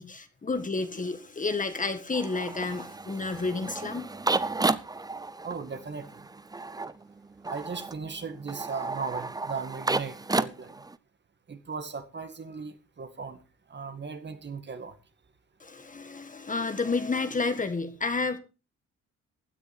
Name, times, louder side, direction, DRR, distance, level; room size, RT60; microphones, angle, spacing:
voice 1, 0.0-4.1 15.6-18.4, left 3 dB, 25° left, 1.7 m, -30 dB
sound 1, 2.1-11.0, right 3 dB, 15° right, 0.7 m, -32 dB
voice 2, 5.4-6.2 7.5-10.8 11.5-13.4 13.7-14.9, right 5 dB, 35° right, 2.1 m, -37 dB
16.0 x 9.6 x 4.4 m
cardioid pair, 90°, 30 cm